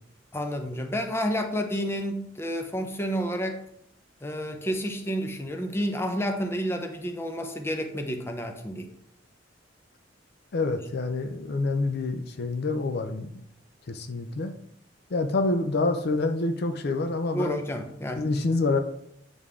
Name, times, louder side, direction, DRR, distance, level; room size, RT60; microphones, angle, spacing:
voice 1, 0.3-3.6 4.2-8.9 17.3-18.3, equal, 15° left, 4 dB, 0.7 m, -30 dB
voice 2, 10.5-13.3 13.9-14.5 15.1-17.6 18.2-18.8, left 3 dB, 55° left, 7 dB, 0.5 m, -27 dB
8.5 x 3.5 x 3.6 m, 0.72 s
head